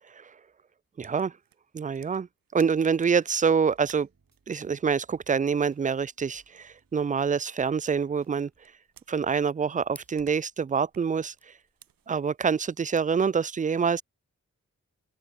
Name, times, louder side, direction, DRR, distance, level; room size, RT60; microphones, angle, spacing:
voice 1, 1.0-1.3 1.7-2.3 2.5-4.1 4.5-8.5 9.1-11.3 12.1-14.0, right 6 dB, 25° right, 0.4 m, -26 dB
sound 1, 1.0-3.2 3.7-7.6 7.8-9.7 10.0-13.1, right 10 dB, 90° right, 1.6 m, -58 dB
sound 2, 2.7-8.7, right 4 dB, 55° right, 6.8 m, -68 dB
sound 3, 8.2-13.3, equal, 5° left, 5.1 m, -59 dB
open air
cardioid pair, 40°, 33 cm